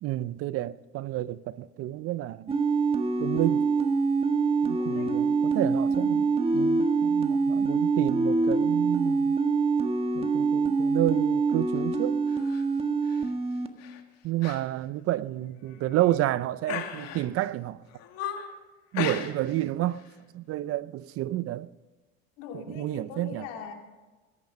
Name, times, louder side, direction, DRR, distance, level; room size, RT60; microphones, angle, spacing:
voice 1, 0.0-2.5 3.2-3.6 4.7-9.4 10.1-12.2 14.2-17.8 18.9-20.0 20.3-21.7 22.7-23.4, right 15 dB, 50° right, 0.6 m, -30 dB
sound 1, 2.5-13.7, right 4 dB, 20° right, 1.6 m, -25 dB
voice 2, 4.7-5.3 5.8-6.3 22.4-23.7, left 6 dB, 75° left, 3.1 m, -41 dB
sound 2, 12.3-12.6 13.1-13.3 13.8-14.0 14.4-14.6 15.0-15.1 15.7-16.2 16.7-17.5 17.9-18.6 18.9-19.6 19.9-20.1, left 8 dB, 60° left, 2.1 m, -36 dB
20.5 x 10.5 x 5.4 m
supercardioid pair, 105°, 30 cm